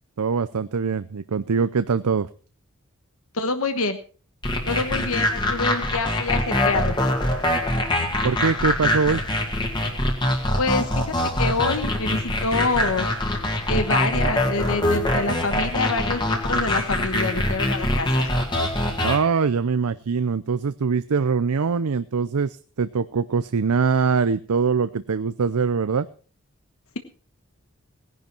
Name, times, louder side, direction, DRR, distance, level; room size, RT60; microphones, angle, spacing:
voice 1, 0.2-2.3 8.2-9.2 19.0-26.1, right 5 dB, 85° right, 13 dB, 0.5 m, -23 dB
voice 2, 3.3-4.0 4.7-6.9 10.6-13.1 13.7-18.3, left 3 dB, 70° left, 8 dB, 1.2 m, -26 dB
sound 1, 4.4-19.2, left 1 dB, 20° left, 2.1 m, -24 dB
17.5 x 10.5 x 4.5 m, 0.39 s
head